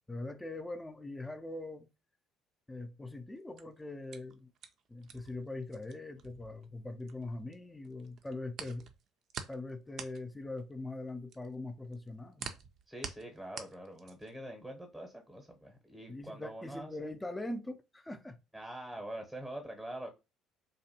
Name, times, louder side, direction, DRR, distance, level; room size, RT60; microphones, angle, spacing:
voice 1, 0.1-1.9 2.7-4.5 4.9-8.9 9.5-12.5 16.1-18.4, left 2 dB, 15° left, 0.4 m, -42 dB
sound 1, 3.4-7.5 7.8-14.4, right 7 dB, 55° right, 0.4 m, -47 dB
voice 2, 12.9-17.0 18.5-20.1, right 1 dB, ahead, 0.8 m, -44 dB
2.6 x 2.1 x 2.7 m
hypercardioid pair, 60°, 0 cm